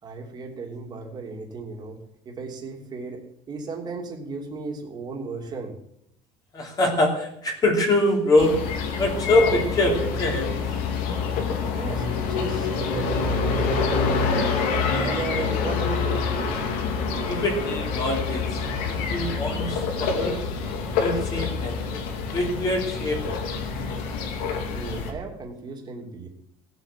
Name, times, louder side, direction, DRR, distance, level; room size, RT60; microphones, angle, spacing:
voice 1, 0.0-2.0 2.2-5.7 11.8-14.0 15.0-16.6 24.4-26.3, right 4 dB, 30° right, 2 dB, 2.9 m, -35 dB
voice 2, 6.5-8.6 9.0-10.5 17.3-18.6 18.8-20.4 21.0-22.0 22.3-23.3, left 1 dB, 25° left, 0 dB, 3.2 m, -24 dB
sound 1, 8.4-25.1, left 5 dB, 80° left, 2.8 m, -26 dB
17.0 x 8.1 x 7.6 m, 0.74 s
cardioid pair, 160°, 15 cm